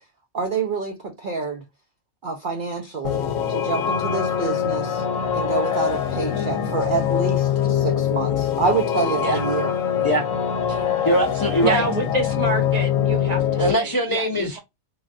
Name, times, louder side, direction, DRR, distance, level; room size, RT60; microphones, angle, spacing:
voice 1, 0.3-1.6 2.2-5.0 5.3-9.7, right 4 dB, 55° right, 0.6 m, -27 dB
sound 1, 3.0-13.7, left 9 dB, 80° left, 1.0 m, -23 dB
voice 2, 10.7-11.8 13.6-14.6, right 1 dB, 35° left, 0.3 m, -22 dB
voice 3, 11.6-14.6, right 3 dB, 35° right, 0.9 m, -28 dB
3.2 x 2.3 x 2.4 m
omnidirectional pair, 1.3 m